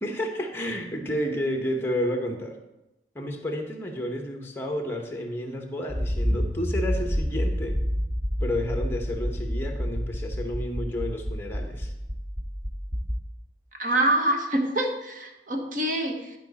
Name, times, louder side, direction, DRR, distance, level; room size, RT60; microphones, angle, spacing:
voice 1, 0.0-2.6 3.1-7.8 8.4-11.9, equal, 15° left, 3 dB, 1.0 m, -31 dB
Accelerating revving vroom, 5.9-13.2, equal, 20° right, 0.9 m, -28 dB
voice 2, 13.8-16.3, right 1 dB, 45° right, 3 dB, 1.1 m, -25 dB
12.0 x 5.0 x 4.1 m, 0.96 s
head